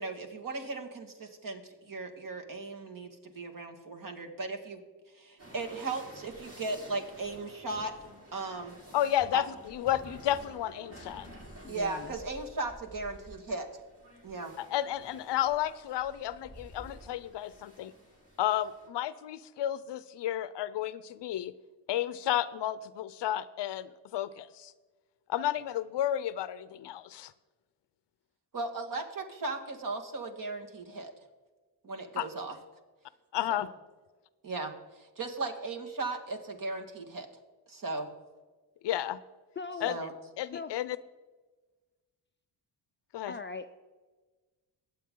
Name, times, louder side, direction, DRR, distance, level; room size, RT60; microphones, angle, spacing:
voice 1, 0.0-4.8 5.1-7.9 8.3-8.7 9.3-9.4 11.7-13.7 14.2-14.5 28.5-31.1 31.8-32.6 33.5-33.6 34.4-37.3 37.7-38.1 39.9-40.1, right 3 dB, 45° right, 4 dB, 2.0 m, -37 dB
sound 1, 5.4-18.9, right 1 dB, 30° right, 3.6 m, -51 dB
voice 2, 8.9-11.3 14.6-17.9 18.4-21.5 21.9-24.7 25.3-27.3 32.2-32.3 33.3-33.7 38.8-39.2 39.8-40.0 40.4-41.0 43.1-43.3, left 12 dB, 65° left, 16 dB, 0.7 m, -32 dB
voice 3, 11.6-12.2 39.6-40.0 40.5-40.7 43.3-43.7, left 5 dB, 25° left, 8 dB, 0.5 m, -39 dB
22.5 x 8.0 x 3.8 m, 1.3 s
cardioid pair, 90°, 44 cm